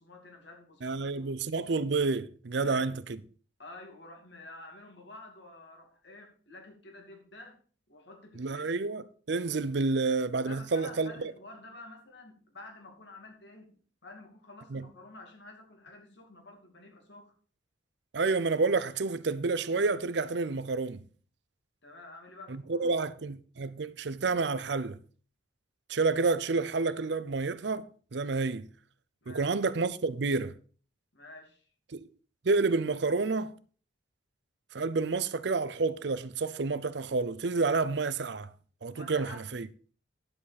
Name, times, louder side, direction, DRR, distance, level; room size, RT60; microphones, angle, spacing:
voice 1, 0.0-1.3 2.6-3.0 3.6-7.6 7.9-8.7 10.5-17.3 21.8-23.1 29.2-29.5 31.1-31.7 38.9-39.4, left 2 dB, 60° left, 2.5 m, -50 dB
voice 2, 0.8-3.0 8.4-11.3 14.7-14.9 18.1-21.0 22.5-25.0 25.9-28.7 29.3-30.5 31.9-32.1 32.4-33.6 34.7-38.5 38.8-39.7, right 3 dB, 60° right, 0.6 m, -29 dB
10.5 x 7.6 x 4.1 m
head